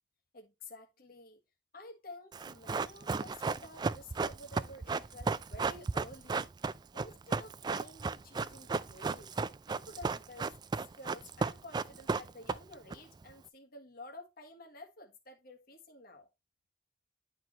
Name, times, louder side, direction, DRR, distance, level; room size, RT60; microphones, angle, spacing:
voice 1, 0.3-1.4 1.7-6.5 6.9-10.5 11.0-16.3, left 2 dB, 55° left, 1.5 m, -51 dB
Run, 2.3-12.9 13.2-13.3, right 4 dB, 25° right, 0.3 m, -34 dB
10.5 x 4.6 x 3.0 m
head